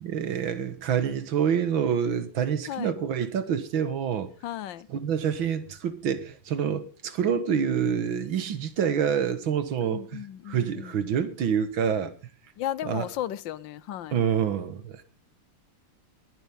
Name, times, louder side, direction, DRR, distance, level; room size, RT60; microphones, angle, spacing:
voice 1, 0.0-4.3 4.9-12.1 12.9-13.1 14.1-15.0, right 7 dB, 85° right, 2.2 m, -27 dB
voice 2, 4.4-4.9 9.8-11.0 12.6-14.2, left 12 dB, 75° left, 1.5 m, -35 dB
20.5 x 11.5 x 3.6 m
omnidirectional pair, 2.1 m